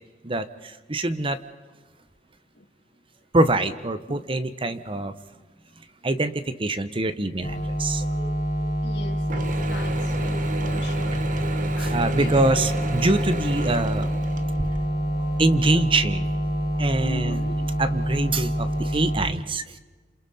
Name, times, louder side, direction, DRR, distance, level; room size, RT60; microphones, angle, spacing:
voice 1, 0.2-1.4 3.3-5.2 6.0-8.7 11.8-14.1 14.6-14.7 15.4-16.3 16.8-17.5 17.8-19.8, right 2 dB, 30° right, 12 dB, 0.9 m, -24 dB
sound 1, 7.4-19.2, equal, 35° left, 4.3 m, -26 dB
voice 2, 8.8-11.2 11.6-12.4 17.0-17.6, left 2 dB, 80° left, 4 dB, 2.2 m, -39 dB
Mechanisms / Drill, 9.3-14.8, right 2 dB, 50° right, 1.3 m, -33 dB
sound 2, 12.3-17.5, left 2 dB, 5° right, 7.5 m, -43 dB
28.0 x 27.5 x 4.2 m, 1.3 s
head